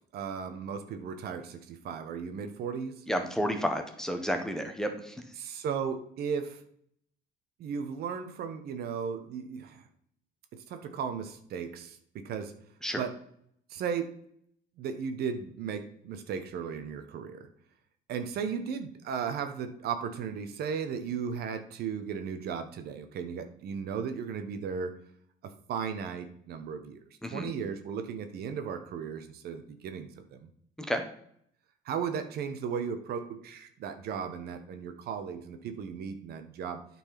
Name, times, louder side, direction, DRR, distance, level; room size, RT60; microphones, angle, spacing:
voice 1, 0.1-3.0 5.4-6.6 7.6-9.8 10.5-12.5 12.9-13.2 13.7-14.1 14.8-17.5 18.1-24.9 25.4-27.0 27.3-30.4 31.8-36.9, right 6 dB, 70° right, 8 dB, 1.1 m, -36 dB
voice 2, 3.1-5.2 12.8-13.0 27.2-27.5 30.8-31.0, equal, 5° left, 5 dB, 1.2 m, -31 dB
9.0 x 4.5 x 5.8 m, 0.66 s
cardioid pair, 110°, 17 cm